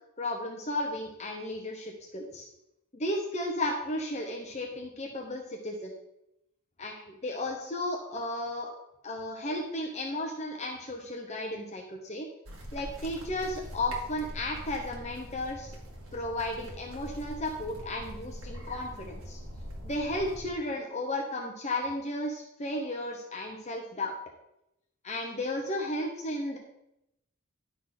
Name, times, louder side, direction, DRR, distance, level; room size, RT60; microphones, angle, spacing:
voice 1, 0.2-2.5 2.9-5.9 6.8-8.7 9.0-12.3 12.7-15.7 16.1-19.4 19.8-24.1 25.0-26.6, left 1 dB, 30° left, 1 dB, 1.0 m, -34 dB
sound 1, 12.5-20.5, equal, 75° right, 2.0 m, -43 dB
11.0 x 4.5 x 5.9 m, 0.84 s
head